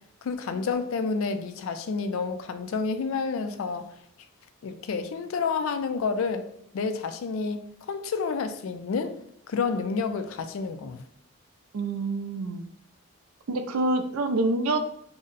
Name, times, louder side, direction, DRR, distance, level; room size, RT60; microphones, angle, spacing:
voice 1, 0.2-3.9 4.6-6.5 6.7-7.6 7.9-9.2 9.5-11.1, left 4 dB, 65° left, 0.3 m, -29 dB
voice 2, 11.7-12.7 13.5-14.8, right 2 dB, 80° right, 0.4 m, -26 dB
2.6 x 2.1 x 3.8 m
head